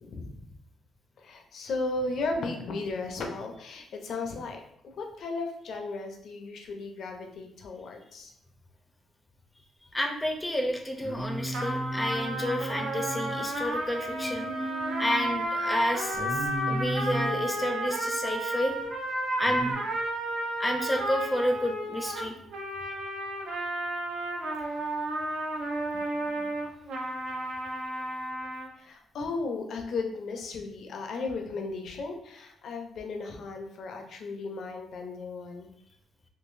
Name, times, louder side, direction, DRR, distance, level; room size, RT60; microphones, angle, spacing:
voice 1, 0.0-0.3 1.2-8.3 28.8-35.7, left 3 dB, 65° left, 3 dB, 0.6 m, -35 dB
voice 2, 9.9-14.7 15.0-18.7 19.3-19.7 20.6-22.4 25.9-26.5, left 1 dB, 15° left, 3 dB, 0.5 m, -30 dB
Singing, 11.0-13.4 14.1-15.2 16.1-17.5 19.4-19.7, right 1 dB, 35° right, 0.8 m, -35 dB
sound 1, 11.5-28.7, right 1 dB, 75° right, 0.7 m, -32 dB
3.8 x 2.6 x 2.6 m, 0.72 s
cardioid pair, 90°, 0 cm